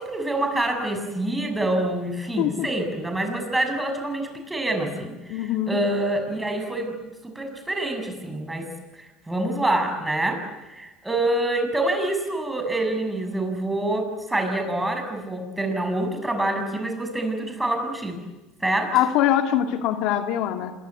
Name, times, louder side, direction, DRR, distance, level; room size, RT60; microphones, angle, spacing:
voice 1, 0.0-8.7 9.3-18.2 18.6-19.0, right 1 dB, 10° right, 5 dB, 6.8 m, -26 dB
voice 2, 2.4-2.7 5.3-5.8 18.9-20.7, left 11 dB, 65° left, 6 dB, 2.2 m, -23 dB
26.5 x 22.5 x 9.5 m, 1.0 s
supercardioid pair, 105°, 0 cm